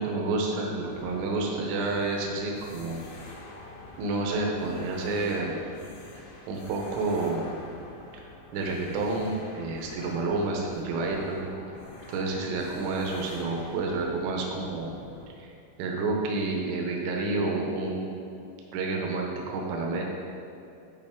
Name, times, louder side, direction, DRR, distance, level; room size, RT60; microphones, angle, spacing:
voice 1, 0.0-3.0 4.0-5.6 6.5-7.5 8.5-11.5 12.1-15.0 15.4-15.5 15.8-18.2 18.7-20.0, right 3 dB, 75° right, 0 dB, 3.3 m, -29 dB
sound 1, 0.8-15.3, left 2 dB, 70° left, 3.0 m, -46 dB
11.5 x 4.8 x 3.7 m, 2.7 s
omnidirectional pair, 6.0 m